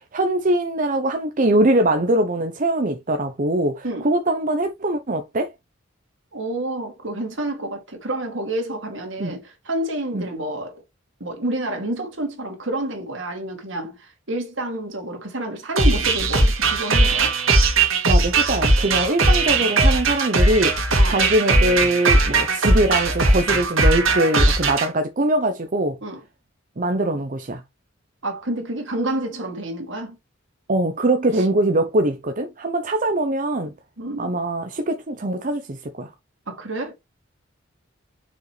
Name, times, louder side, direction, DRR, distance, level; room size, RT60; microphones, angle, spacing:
voice 1, 0.0-5.5 9.2-9.4 10.1-10.3 18.0-20.8 21.1-26.0 26.8-27.6 30.7-33.7 34.2-36.1, right 1 dB, 40° right, 0.7 m, -22 dB
voice 2, 6.3-10.8 11.2-17.3 20.9-21.2 26.0-26.2 28.2-30.2 31.4-31.5 34.0-34.4 36.5-36.9, right 1 dB, 70° right, 2.6 m, -29 dB
sound 1, 15.8-24.9, right 2 dB, 85° right, 2.3 m, -18 dB
6.6 x 5.2 x 3.2 m
head